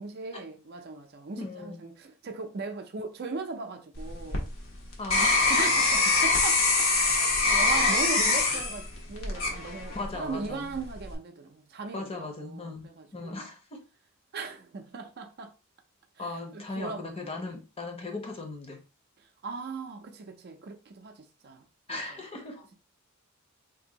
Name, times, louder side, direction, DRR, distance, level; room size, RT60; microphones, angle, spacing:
voice 1, 0.0-4.5 5.6-6.6 7.0-13.5 14.3-15.5 16.2-17.5 19.4-21.6 21.9-22.0, right 4 dB, 50° right, 0.4 m, -39 dB
voice 2, 1.4-1.8 5.0-6.0 9.9-10.7 11.9-13.8 16.2-18.8 21.9-22.7, left 2 dB, 25° left, 0.7 m, -38 dB
sound 1, 3.9-10.2 10.7-11.1, left 3 dB, 65° left, 0.8 m, -24 dB
2.7 x 2.6 x 3.8 m
head